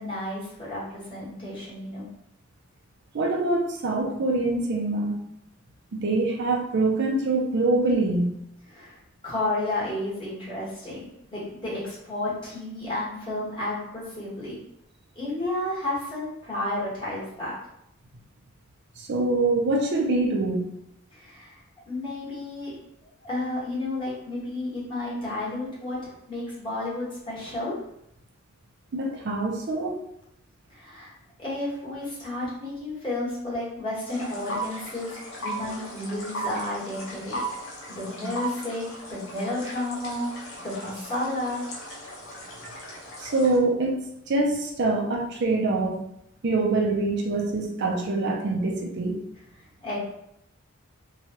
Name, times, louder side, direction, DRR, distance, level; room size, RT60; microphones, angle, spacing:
voice 1, 0.0-2.1 8.7-9.0 9.2-14.6 15.1-17.5 21.1-21.6 21.9-22.7 23.2-27.8 30.7-31.1 31.4-35.1 35.4-37.5 37.9-40.3 40.6-41.6 49.8-50.0, left 2 dB, 25° left, -8 dB, 1.3 m, -32 dB
voice 2, 3.1-5.3 5.9-8.3 19.0-20.7 28.9-30.0 43.2-46.0 46.4-49.2, right 2 dB, 55° right, 0 dB, 0.5 m, -25 dB
sound 1, 34.1-43.6, right 1 dB, 70° left, 0.8 m, -37 dB
3.0 x 2.3 x 2.8 m, 0.78 s
head